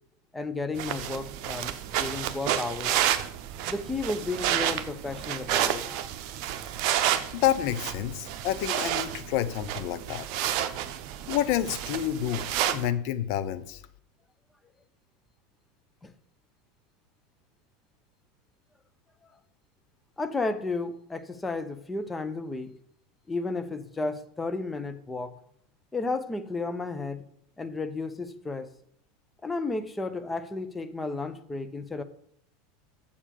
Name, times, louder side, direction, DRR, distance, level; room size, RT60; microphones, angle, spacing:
voice 1, 0.3-2.9 3.7-6.1 6.6-7.0 20.2-22.7 23.3-25.3 25.9-27.2 27.6-28.7 29.4-32.0, left 3 dB, 15° left, 10 dB, 0.9 m, -33 dB
sound 1, 0.8-12.9, right 11 dB, 50° right, 0.8 m, -30 dB
voice 2, 7.3-10.3 11.3-13.8, left 11 dB, 50° left, 13 dB, 0.7 m, -29 dB
7.2 x 7.1 x 6.8 m, 0.66 s
figure-of-eight pair, 80°, 0 cm